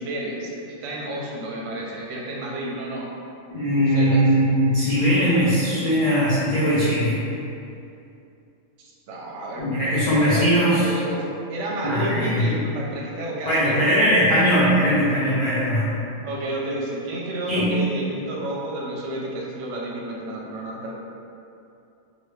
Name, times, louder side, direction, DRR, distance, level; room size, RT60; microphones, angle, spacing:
voice 1, 0.0-3.1 3.7-4.2 8.8-9.8 10.2-13.9 16.2-21.0, right 1 dB, 70° right, -3 dB, 0.8 m, -31 dB
voice 2, 3.5-7.2 9.6-10.9 11.8-12.5 13.5-15.9 17.5-17.7, equal, 50° left, -10 dB, 0.5 m, -20 dB
2.9 x 2.6 x 3.1 m, 2.6 s
omnidirectional pair, 1.4 m